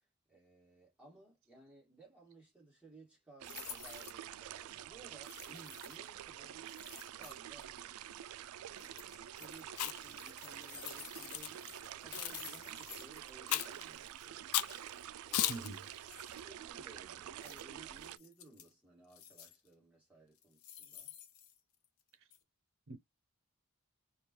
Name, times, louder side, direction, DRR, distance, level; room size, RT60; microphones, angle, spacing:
voice 1, 0.0-7.9 8.6-14.6 15.2-15.7 16.4-21.1, right 2 dB, 5° right, 2.0 m, -59 dB
sound 1, 3.4-4.2 5.2-6.1 6.6-7.6 8.7-9.6 10.0-13.3 13.6-13.7 14.0-14.3 15.4-16.4 17.4-17.6 18.0-18.7 19.1-19.7 20.3-22.0 22.3-22.4, left 9 dB, 70° left, 0.8 m, -53 dB
sound 2, 3.4-18.2, right 11 dB, 80° right, 0.3 m, -48 dB
Chewing mastication, 9.7-10.2 10.8-11.5 12.1-12.4 13.5-13.8 14.5-14.8 15.3-15.7, left 13 dB, 85° left, 0.4 m, -35 dB
voice 2, 15.5-15.9 22.2-22.3 22.9-23.0, right 3 dB, 65° right, 0.7 m, -44 dB
5.0 x 2.3 x 3.0 m
head